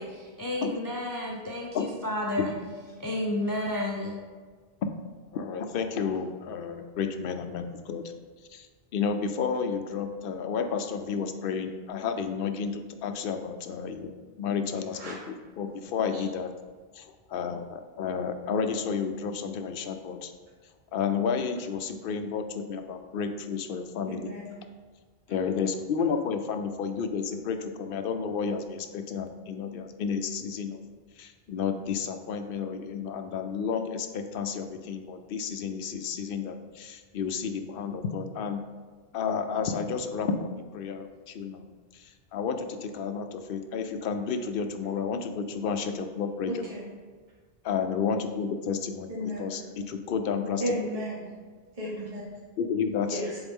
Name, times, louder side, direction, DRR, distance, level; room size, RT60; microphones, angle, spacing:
voice 1, 0.0-2.5 3.0-4.2, left 1 dB, 25° left, -1 dB, 0.5 m, -31 dB
voice 2, 5.3-8.0 8.5-8.7 8.9-14.1 14.4-16.5 16.9-20.3 20.9-24.3 25.3-30.8 31.2-38.6 39.1-40.5 40.7-41.7 41.9-46.6 47.6-50.6 52.6-53.2, left 6 dB, 65° left, 7 dB, 0.7 m, -31 dB
voice 3, 24.1-24.5 46.5-46.8 49.1-49.4 50.6-51.2 51.8-52.2 53.1-53.4, equal, 35° right, -7 dB, 1.4 m, -33 dB
7.1 x 4.0 x 3.5 m, 1.5 s
omnidirectional pair, 1.1 m